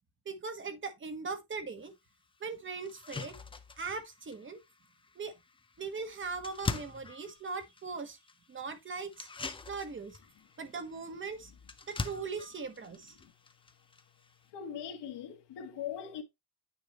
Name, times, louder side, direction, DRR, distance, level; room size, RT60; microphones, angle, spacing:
voice 1, 0.2-1.9 2.4-3.3 3.8-4.6 5.1-5.3 5.8-8.2 8.5-9.3 9.7-10.2 10.6-11.5 11.9-13.2, right 4 dB, 25° right, 1.1 m, -39 dB
sound 1, 1.8-1.9 2.4-2.5 2.8-14.5, left 4 dB, 15° left, 0.4 m, -44 dB
voice 2, 14.5-16.2, left 8 dB, 65° left, 1.7 m, -40 dB
9.1 x 4.8 x 2.9 m
cardioid pair, 155°, 44 cm